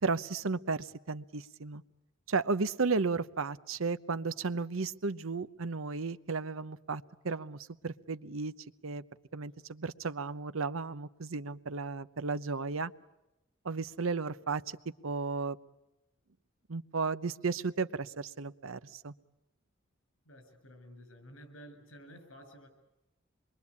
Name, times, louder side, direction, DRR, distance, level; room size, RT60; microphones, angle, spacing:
voice 1, 0.0-1.8 2.3-8.5 8.8-9.0 9.3-12.9 13.6-14.8 15.0-15.6 16.7-19.1, right 4 dB, 80° right, 13 dB, 0.9 m, -34 dB
voice 2, 20.2-22.7, equal, 80° left, 8 dB, 7.3 m, -52 dB
26.5 x 22.5 x 8.4 m, 0.94 s
head